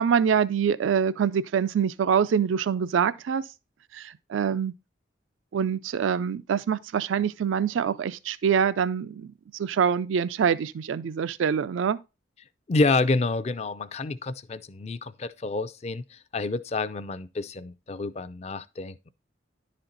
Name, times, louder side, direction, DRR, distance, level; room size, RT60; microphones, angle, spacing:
voice 1, 0.0-3.4 3.9-4.7 5.5-12.0, right 7 dB, 90° right, 0.4 m, -25 dB
voice 2, 12.7-19.1, left 3 dB, 35° left, 0.4 m, -28 dB
11.0 x 4.3 x 3.9 m
head